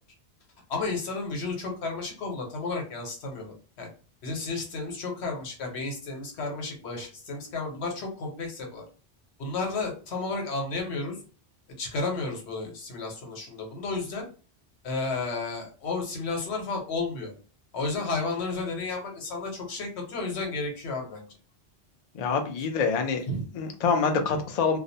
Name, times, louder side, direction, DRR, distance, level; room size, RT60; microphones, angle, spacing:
voice 1, 0.7-3.9 4.2-8.8 9.4-11.2 11.8-14.3 14.8-17.3 17.7-21.2 23.3-23.4, left 3 dB, 90° left, 1 dB, 1.1 m, -32 dB
voice 2, 22.1-23.2 23.6-24.8, left 5 dB, 55° left, 5 dB, 0.4 m, -26 dB
2.4 x 2.0 x 2.7 m, 0.37 s
omnidirectional pair, 1.1 m